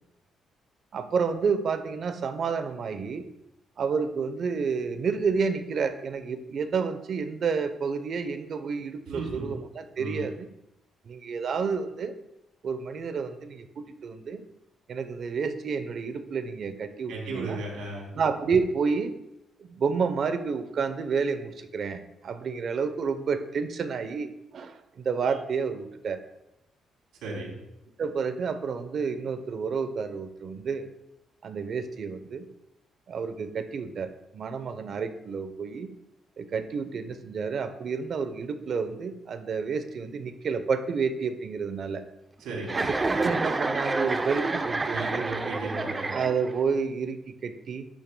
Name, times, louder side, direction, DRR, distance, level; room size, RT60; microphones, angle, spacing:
voice 1, 0.9-3.3 3.8-10.5 11.0-12.1 12.6-14.4 14.9-17.6 18.2-19.1 19.6-26.2 28.0-30.9 31.4-32.5 33.1-35.9 36.4-42.0 42.7-45.2 46.1-47.9, right 5 dB, 55° right, 10 dB, 0.8 m, -30 dB
voice 2, 9.1-9.5 10.0-10.3 17.1-18.1 27.2-27.6 42.4-42.8 44.9-46.1, right 3 dB, 90° right, -2 dB, 3.1 m, -35 dB
Chuckle chortle, 42.6-46.7, right 3 dB, 25° right, 0.6 m, -28 dB
11.5 x 9.1 x 2.3 m, 0.87 s
cardioid pair, 90°, 0 cm